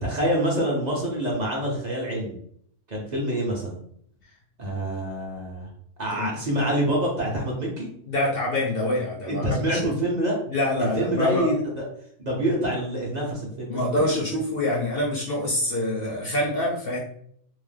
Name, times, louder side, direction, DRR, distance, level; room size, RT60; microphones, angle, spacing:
voice 1, 0.0-2.4 2.9-3.8 4.6-5.7 6.0-7.9 9.3-10.4 10.8-11.8 12.2-13.8, right 1 dB, 40° right, -3 dB, 0.6 m, -26 dB
voice 2, 8.1-9.9 10.5-11.5 13.7-17.0, left 1 dB, 55° left, -3 dB, 0.6 m, -26 dB
2.9 x 2.0 x 3.3 m, 0.66 s
omnidirectional pair, 1.6 m